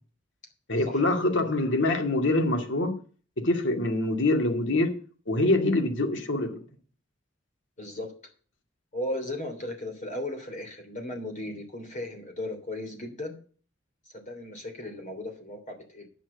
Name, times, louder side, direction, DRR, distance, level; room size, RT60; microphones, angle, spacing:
voice 1, 0.7-2.9 3.4-5.0 5.3-6.6, left 2 dB, 65° left, 2.3 m, -25 dB
voice 2, 7.8-8.1 8.9-13.4 14.1-16.1, left 1 dB, 40° left, 3.2 m, -36 dB
10.0 x 6.3 x 8.1 m
head